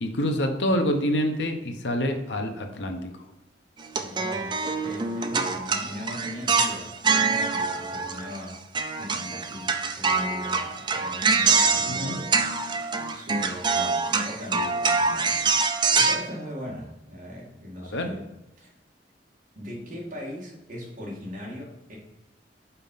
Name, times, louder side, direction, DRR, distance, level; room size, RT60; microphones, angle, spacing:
voice 1, 0.0-3.1 11.9-12.2 17.9-18.1, equal, 70° left, 5 dB, 0.9 m, -26 dB
sound 1, 3.8-8.5 8.7-16.2, right 4 dB, 25° right, 0.5 m, -25 dB
voice 2, 3.9-8.6 9.0-15.4 15.9-18.3 18.6-18.7 19.6-22.0, left 1 dB, 45° right, -4 dB, 2.1 m, -40 dB
5.6 x 4.2 x 5.5 m, 0.95 s
head